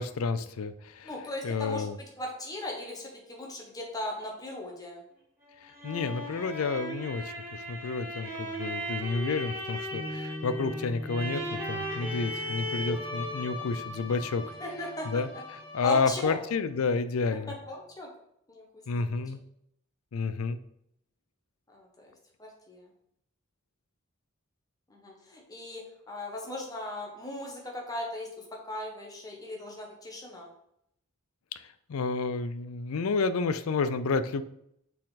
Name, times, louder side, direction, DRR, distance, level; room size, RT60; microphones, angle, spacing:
voice 1, 0.0-1.1 1.4-2.0 5.8-14.4 15.1-15.3 15.7-17.5 18.9-19.4 20.1-20.6 31.9-34.4, left 4 dB, 85° left, 12 dB, 0.5 m, -30 dB
voice 2, 1.0-1.9 2.2-5.0 14.6-15.1 15.8-16.4 17.5-18.1 18.5-18.6 18.9-19.2 21.7-22.1 22.4-22.9 24.9-30.5, left 1 dB, 15° left, -1 dB, 1.3 m, -38 dB
sound 1, 5.4-16.3, equal, 10° right, 2.1 m, -37 dB
Piano, 9.9-16.6, left 1 dB, 45° right, 1.7 m, -44 dB
6.4 x 4.1 x 4.1 m, 0.75 s
head